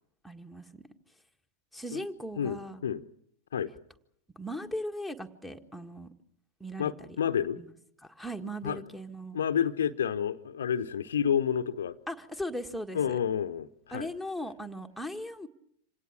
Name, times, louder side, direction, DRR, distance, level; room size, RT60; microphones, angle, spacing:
voice 1, 0.2-0.8 1.7-2.8 4.3-6.1 6.6-7.2 7.5-7.7 8.0-9.4 12.1-13.2 13.9-15.5, equal, ahead, 9 dB, 1.7 m, -38 dB
voice 2, 2.4-3.0 3.5-3.7 6.8-7.6 8.6-8.8 9.3-12.0 12.9-14.1, left 8 dB, 65° left, 10 dB, 0.9 m, -29 dB
27.0 x 17.5 x 8.5 m, 0.71 s
figure-of-eight pair, 90°, 0 cm